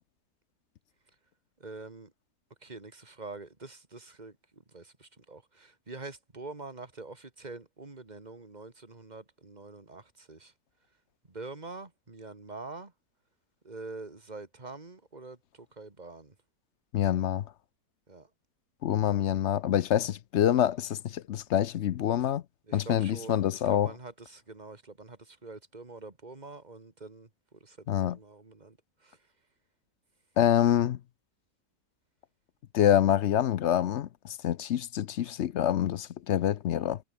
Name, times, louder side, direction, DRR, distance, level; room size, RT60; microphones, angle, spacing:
voice 1, 1.6-2.1 2.6-4.4 4.7-10.5 11.3-12.9 13.6-15.4 15.8-16.3 18.1-18.3 22.7-27.3 27.6-28.8 29.0-29.2, right 3 dB, 25° right, 2.5 m, -45 dB
voice 2, 16.9-17.4 18.8-22.4 22.7-23.9 27.9-28.2 30.4-31.0 32.7-37.0, left 11 dB, 60° left, 0.8 m, -26 dB
omnidirectional pair, 1.6 m